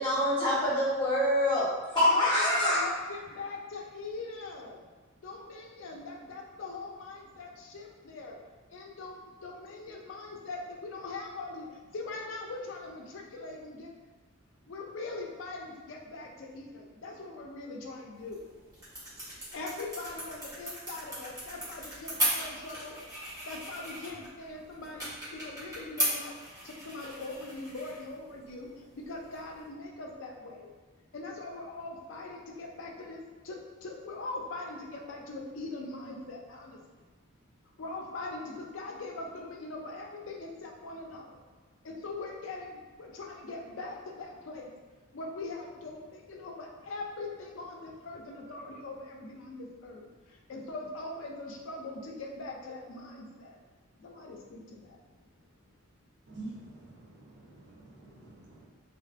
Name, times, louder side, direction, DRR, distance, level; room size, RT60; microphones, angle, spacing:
voice 1, 0.0-1.7 1.9-2.8, left 1 dB, 20° left, -10 dB, 1.0 m, -25 dB
voice 2, 2.1-4.8 5.2-8.4 8.7-11.7 11.9-14.0 14.7-18.4 19.5-23.0 23.5-26.3 26.6-28.7 28.9-30.7 31.1-36.8 37.8-41.3 41.8-44.7 45.1-53.6 54.0-55.0, left 3 dB, 70° left, 0 dB, 0.4 m, -41 dB
sound 1, 18.1-29.7, right 1 dB, 20° right, 0.9 m, -38 dB
voice 3, 56.3-58.6, right 2 dB, 55° right, -5 dB, 0.6 m, -47 dB
2.5 x 2.5 x 2.4 m, 1.3 s
head